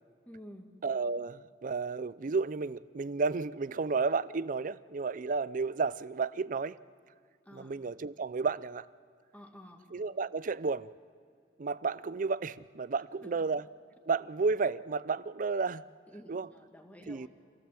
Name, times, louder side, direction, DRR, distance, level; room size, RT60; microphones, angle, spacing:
voice 1, 0.3-0.7 7.4-7.7 9.3-9.9 13.2-13.3 16.1-17.3, equal, 10° left, 3 dB, 2.0 m, -50 dB
voice 2, 0.8-6.8 7.5-8.9 9.9-10.9 11.6-13.6 14.1-15.8 16.3-16.5 17.1-17.3, right 4 dB, 50° right, 17 dB, 0.5 m, -32 dB
27.0 x 17.0 x 7.6 m, 2.2 s
head